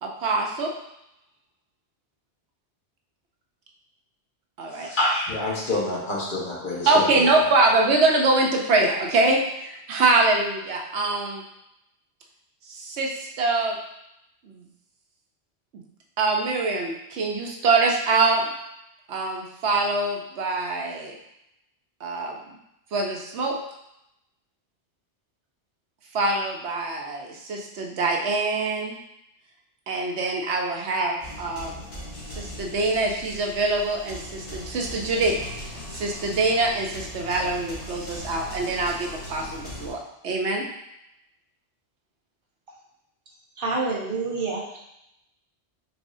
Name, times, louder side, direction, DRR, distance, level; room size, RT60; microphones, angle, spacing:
voice 1, 0.0-0.7 4.6-4.9 6.9-11.4 12.7-13.7 14.4-14.6 16.2-18.4 19.1-21.2 22.0-22.4 22.9-23.6 26.1-29.0 29.9-31.7 32.3-35.3 35.9-40.0 40.2-40.6, right 3 dB, 80° right, 1 dB, 1.1 m, -24 dB
voice 2, 4.7-7.3, left 1 dB, 50° left, -4 dB, 1.3 m, -27 dB
sound 1, 31.2-39.9, left 1 dB, 70° left, 1.8 m, -39 dB
voice 3, 43.6-44.8, right 3 dB, 55° right, -4 dB, 1.2 m, -27 dB
4.7 x 4.2 x 2.6 m, 0.82 s
omnidirectional pair, 1.1 m